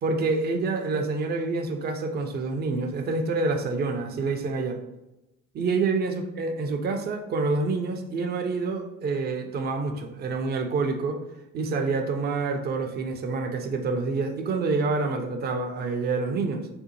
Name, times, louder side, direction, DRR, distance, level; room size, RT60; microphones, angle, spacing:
voice 1, 0.0-4.8 5.5-11.2 11.5-16.7, right 3 dB, 25° right, 4 dB, 0.4 m, -27 dB
2.7 x 2.1 x 2.7 m, 0.95 s
hypercardioid pair, 55°, 41 cm